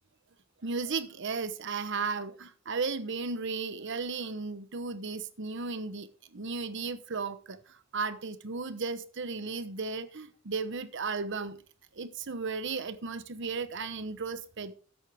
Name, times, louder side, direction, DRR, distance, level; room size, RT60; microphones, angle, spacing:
voice 1, 0.6-11.6 11.9-14.7, right 4 dB, 60° right, 1.0 m, -35 dB
13.0 x 9.8 x 3.5 m
head